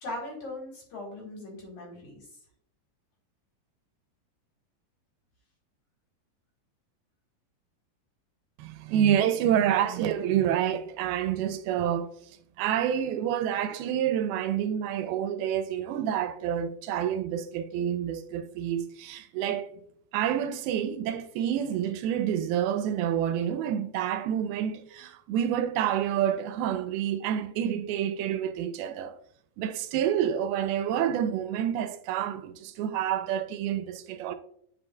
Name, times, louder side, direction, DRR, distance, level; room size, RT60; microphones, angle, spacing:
voice 1, 0.0-2.4, left 1 dB, 55° left, 2.4 m, -39 dB
voice 2, 8.6-12.1 12.6-19.7 20.1-29.1 29.6-34.4, right 10 dB, 85° right, 2.4 m, -28 dB
9.4 x 5.4 x 2.2 m
omnidirectional pair, 4.5 m